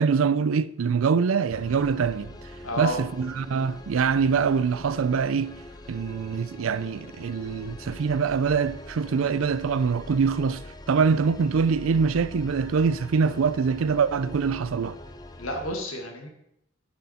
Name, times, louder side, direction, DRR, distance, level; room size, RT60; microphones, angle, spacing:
voice 1, 0.0-2.3 2.8-5.6 5.9-15.0, right 5 dB, 80° right, 0.4 m, -24 dB
sound 1, 1.5-15.8, left 1 dB, 20° left, 0.5 m, -43 dB
voice 2, 2.6-3.0 15.4-16.3, left 1 dB, 90° left, 1.8 m, -31 dB
10.0 x 6.3 x 4.2 m
head